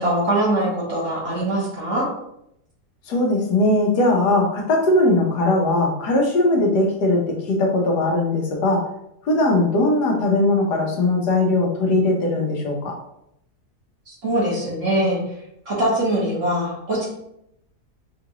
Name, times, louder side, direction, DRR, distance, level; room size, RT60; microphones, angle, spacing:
voice 1, 0.0-2.1 14.2-15.2 15.7-17.0, right 1 dB, 50° right, -6 dB, 1.5 m, -22 dB
voice 2, 3.1-8.9 9.2-12.9, left 2 dB, 85° left, 0 dB, 1.5 m, -19 dB
5.7 x 2.5 x 2.9 m, 0.79 s
omnidirectional pair, 1.7 m